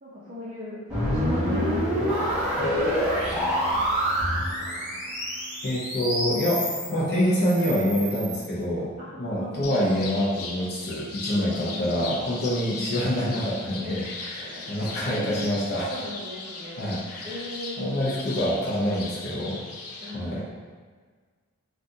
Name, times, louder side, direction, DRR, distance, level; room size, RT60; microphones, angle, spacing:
voice 1, 0.0-3.8 4.4-5.0 8.7-9.8 11.3-12.2 12.8-13.1 13.8-18.0 20.0-20.5, left 1 dB, 25° right, -12 dB, 0.7 m, -39 dB
sound 1, 0.9-6.9 7.4-8.4, equal, 5° right, 1.0 m, -27 dB
voice 2, 5.6-8.9 9.2-15.9 16.8-17.3 17.8-19.6 20.1-20.4, equal, 50° left, -7 dB, 0.7 m, -26 dB
sound 2, 9.6-20.1, left 3 dB, 85° left, 0.4 m, -38 dB
2.7 x 2.5 x 3.6 m, 1.5 s
head